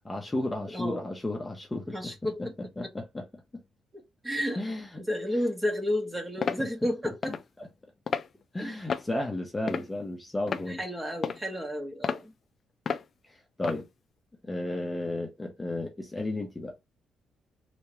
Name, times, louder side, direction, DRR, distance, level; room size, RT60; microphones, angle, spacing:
voice 1, 0.0-2.1 2.4-3.2 3.5-3.6 4.6-5.0 7.6-7.7 8.5-10.8 13.3-13.9 14.4-16.7, left 1 dB, 15° left, 0.8 m, -33 dB
voice 2, 0.7-1.1 1.9-2.5 2.8-2.9 4.2-4.6 5.0-7.4 8.6-8.8 9.6-9.8 10.7-12.3, left 1 dB, 15° right, 1.3 m, -32 dB
sound 1, 6.4-6.6 7.2-7.4 8.1-8.3 8.9-9.1 9.7-10.0 10.5-10.7 11.2-11.5 12.0-12.2 12.9-13.0 13.6-13.8, left 6 dB, 50° left, 0.4 m, -31 dB
3.4 x 2.9 x 3.1 m
cardioid pair, 90°, 0 cm